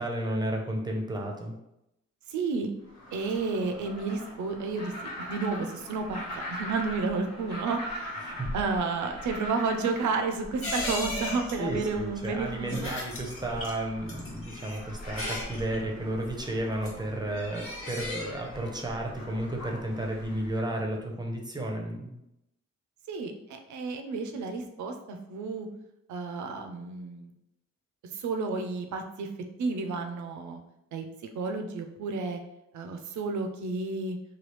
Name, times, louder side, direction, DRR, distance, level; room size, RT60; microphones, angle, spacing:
voice 1, 0.0-1.5 8.2-8.5 11.6-22.1, right 1 dB, 15° right, 0 dB, 0.6 m, -33 dB
voice 2, 2.3-2.7 3.1-4.9 5.3-12.9 23.1-25.7 26.1-27.3 28.1-29.3 29.6-30.6 30.9-31.0 31.3-32.4 32.7-34.2, right 4 dB, 80° right, 6 dB, 0.5 m, -31 dB
sound 1, 2.9-20.6, left 1 dB, 65° left, 1.2 m, -42 dB
sound 2, 10.6-20.6 20.8-20.9, left 2 dB, 50° left, 1.0 m, -38 dB
3.2 x 2.3 x 3.1 m, 0.84 s
cardioid pair, 100°, 29 cm